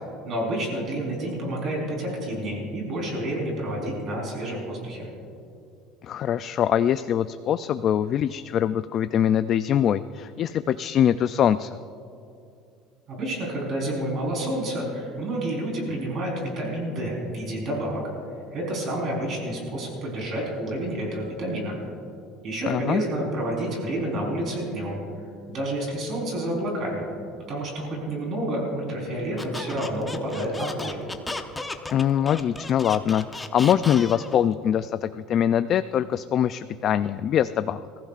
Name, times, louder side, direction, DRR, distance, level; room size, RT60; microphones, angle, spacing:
voice 1, 0.3-5.1 13.1-18.1 18.5-21.8 22.4-25.0 25.5-27.0 27.5-31.0, right 1 dB, 40° right, -1 dB, 4.0 m, -29 dB
voice 2, 6.0-11.8 22.7-23.0 31.9-37.8, left 9 dB, 40° left, 12 dB, 0.3 m, -23 dB
Squeak, 29.4-34.4, left 2 dB, 10° left, 0.7 m, -35 dB
27.0 x 15.0 x 2.5 m, 2.6 s
cardioid pair, 150°, 0 cm